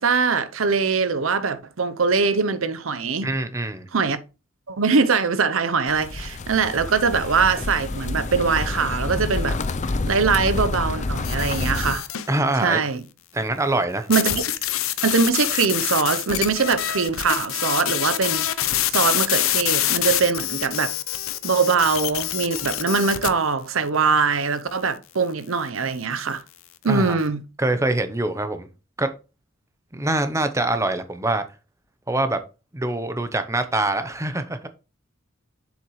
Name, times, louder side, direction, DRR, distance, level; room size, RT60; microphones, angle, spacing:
voice 1, 0.0-3.3 3.9-4.2 4.7-9.6 10.1-12.1 12.6-13.0 14.1-14.4 15.0-18.5 18.9-20.9 21.4-26.4 26.8-27.4, right 5 dB, 75° right, 0.8 m, -22 dB
voice 2, 3.2-3.9 12.3-12.8 13.3-14.1 26.9-27.2 27.6-28.7 29.0-29.1 29.9-31.4 32.1-32.4 32.7-34.7, right 2 dB, 15° right, 0.8 m, -24 dB
sound 1, 5.9-12.0, left 2 dB, 35° left, 0.5 m, -28 dB
sound 2, 11.2-12.3 14.1-23.3, left 13 dB, 80° left, 0.7 m, -25 dB
7.3 x 7.2 x 3.2 m
head